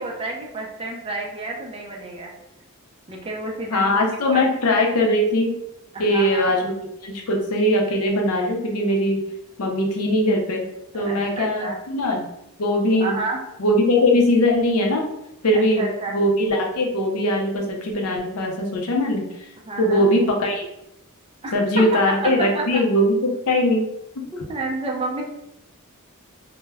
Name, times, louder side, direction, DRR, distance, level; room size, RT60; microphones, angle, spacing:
voice 1, 0.0-2.3 3.1-4.0 4.3-4.4 5.9-6.5 10.9-11.8 13.0-13.4 15.5-16.2 19.6-20.1 21.4-22.8 24.3-25.2, right 2 dB, 25° right, -1 dB, 0.4 m, -30 dB
voice 2, 3.7-5.5 6.0-6.7 7.0-9.2 9.6-10.6 10.9-12.3 12.6-13.2 13.6-15.0 15.4-19.3 19.8-20.6 21.5-23.9, left 1 dB, 70° left, 1 dB, 0.5 m, -20 dB
2.2 x 2.0 x 3.4 m, 0.87 s
head